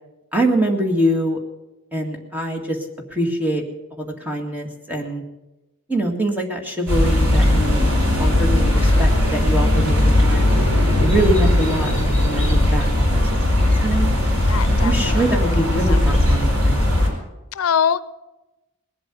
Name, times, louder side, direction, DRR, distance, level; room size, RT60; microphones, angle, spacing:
voice 1, 0.3-1.4 1.9-2.8 3.1-3.6 3.9-5.2 5.9-7.9 8.2-10.5 11.0-11.9 12.2-14.1 14.7-16.8, right 1 dB, 10° right, 1 dB, 2.0 m, -24 dB
sound 1, 6.9-17.1, left 1 dB, 90° right, 5.1 m, -18 dB
voice 2, 8.6-9.2 14.5-15.2 15.9-16.3 17.6-18.0, left 7 dB, 80° left, 17 dB, 0.5 m, -25 dB
20.0 x 7.9 x 8.2 m, 1.0 s
head